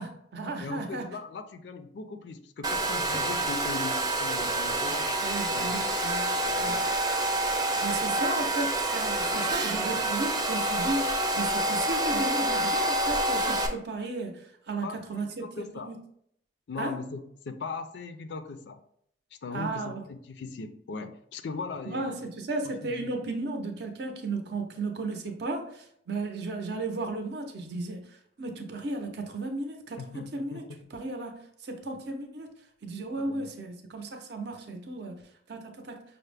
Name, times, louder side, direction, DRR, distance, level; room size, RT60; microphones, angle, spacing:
voice 1, 0.0-1.2 5.2-6.8 7.8-16.0 16.8-16.9 19.5-20.0 21.9-30.6 30.9-32.5 32.8-35.2 35.5-36.0, right 2 dB, 60° right, 4 dB, 0.6 m, -34 dB
voice 2, 0.6-5.2 5.5-6.0 6.4-6.9 14.8-16.0 16.7-18.8 19.3-22.3 22.6-23.1 30.0-30.9 33.2-33.5, left 4 dB, 65° left, 9 dB, 0.4 m, -39 dB
Domestic sounds home sounds, 2.6-13.7, right 1 dB, 20° right, 0.3 m, -27 dB
5.5 x 2.0 x 3.3 m, 0.69 s
head